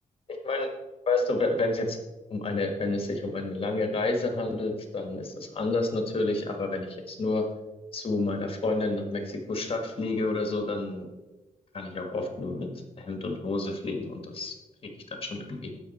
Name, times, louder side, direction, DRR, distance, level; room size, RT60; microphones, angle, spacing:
voice 1, 1.1-2.0 2.3-7.4 7.9-11.1 11.7-12.7 13.0-14.5 14.8-14.9 15.2-15.8, left 2 dB, 40° left, 4 dB, 1.5 m, -29 dB
13.5 x 5.7 x 4.2 m, 1.1 s
wide cardioid pair, 170°, 14 cm